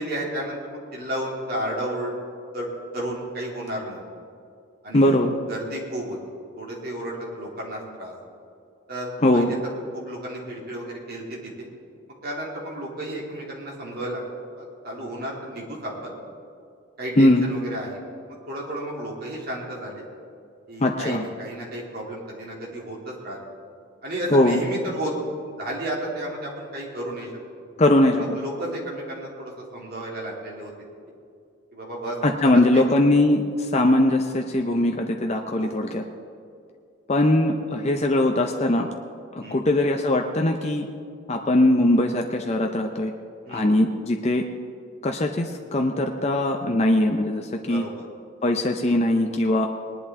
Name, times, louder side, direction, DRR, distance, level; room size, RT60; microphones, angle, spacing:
voice 1, 0.0-2.1 2.5-2.7 2.9-4.0 4.8-5.2 5.5-6.2 6.6-8.1 8.9-11.7 12.2-14.2 14.6-16.1 17.0-18.0 18.5-20.0 20.7-23.4 24.0-25.1 25.6-27.3 28.2-30.7 31.7-32.2 32.5-32.8 35.6-35.8 39.4-39.6 43.4-43.7 47.7-48.1, right 1 dB, 45° right, -4 dB, 2.8 m, -32 dB
voice 2, 4.9-5.4 9.2-9.5 17.2-17.5 20.8-21.2 24.3-24.6 27.8-28.4 32.2-36.0 37.1-38.9 39.4-40.9 41.3-43.1 43.5-44.4 45.0-47.9 48.4-49.7, left 1 dB, 30° left, 3 dB, 0.6 m, -21 dB
20.0 x 11.0 x 3.6 m, 2.4 s
head